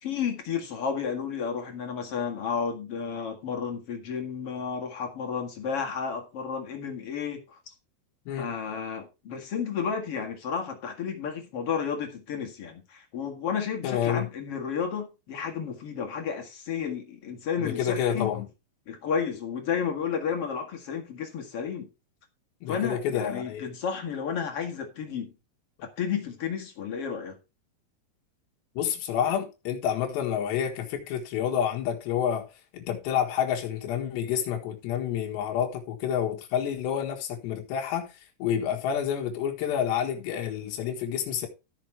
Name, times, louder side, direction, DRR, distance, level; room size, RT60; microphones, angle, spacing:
voice 1, 0.0-7.6 8.4-18.3 18.9-21.9 22.7-25.3 25.8-27.4, left 6 dB, 45° left, 2.2 m, -32 dB
voice 2, 13.8-14.3 17.6-18.5 22.6-23.7 28.8-32.5 32.7-38.1 38.4-41.5, left 9 dB, 85° left, 3.8 m, -29 dB
14.0 x 6.3 x 4.5 m
omnidirectional pair, 4.8 m